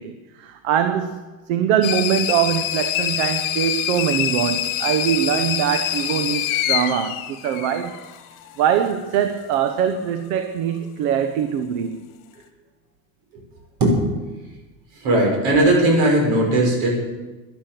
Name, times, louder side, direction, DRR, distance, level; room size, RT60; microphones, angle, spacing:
voice 1, 0.0-8.0 8.6-12.0, right 9 dB, 70° right, 8 dB, 1.1 m, -22 dB
sound 1, 1.8-8.2, left 12 dB, 70° left, 1.7 m, -25 dB
voice 2, 15.0-16.9, right 1 dB, 50° right, 0 dB, 6.0 m, -17 dB
12.0 x 11.0 x 7.6 m, 1.2 s
cardioid pair, 155°, 42 cm